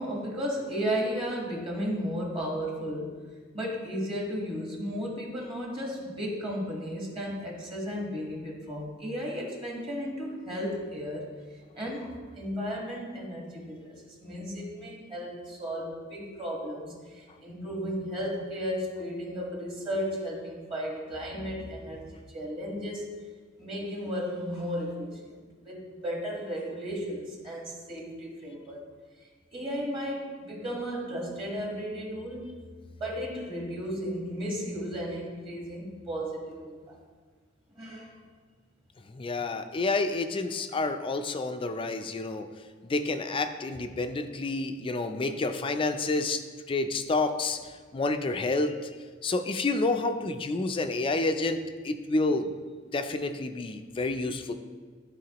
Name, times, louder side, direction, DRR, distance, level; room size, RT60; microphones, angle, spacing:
voice 1, 0.0-3.2 3.5-23.2 23.6-25.3 25.6-28.9 29.5-32.6 33.0-37.0 37.7-38.2, equal, 25° right, -2 dB, 1.3 m, -34 dB
voice 2, 39.1-42.5 42.8-46.4 46.7-48.8 49.2-51.6 51.8-52.5 52.9-54.5, left 3 dB, 25° left, 8 dB, 0.4 m, -29 dB
12.0 x 4.2 x 2.9 m, 1.5 s
head